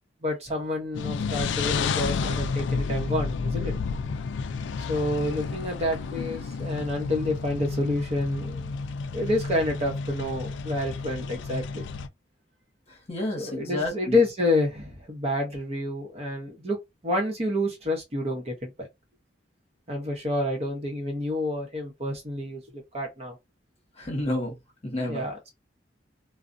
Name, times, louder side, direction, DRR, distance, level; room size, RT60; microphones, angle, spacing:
voice 1, 0.2-3.7 4.9-8.7 9.1-11.9 13.4-18.9 19.9-22.6 22.9-23.4 25.1-25.6, left 1 dB, 35° right, 0.8 m, -28 dB
sound 1, 0.9-12.1, left 4 dB, 80° left, 0.3 m, -31 dB
voice 2, 12.9-14.2 24.0-24.6 24.8-25.3, left 1 dB, 35° left, 1.0 m, -30 dB
2.4 x 2.0 x 2.5 m
head